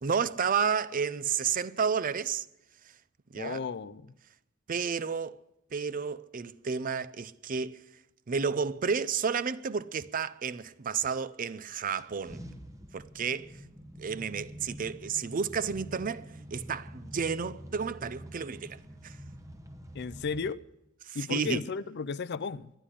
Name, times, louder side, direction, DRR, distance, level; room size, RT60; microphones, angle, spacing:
voice 1, 0.0-2.5 3.3-3.6 4.7-5.4 5.7-7.8 8.3-12.4 12.9-13.6 14.0-19.2 21.0-21.6, right 6 dB, 40° right, 0.5 m, -31 dB
voice 2, 3.4-4.1 19.9-20.6 21.1-22.7, left 5 dB, 50° left, 0.5 m, -34 dB
sound 1, 11.9-20.5, equal, 15° right, 1.0 m, -47 dB
12.0 x 10.0 x 9.8 m
head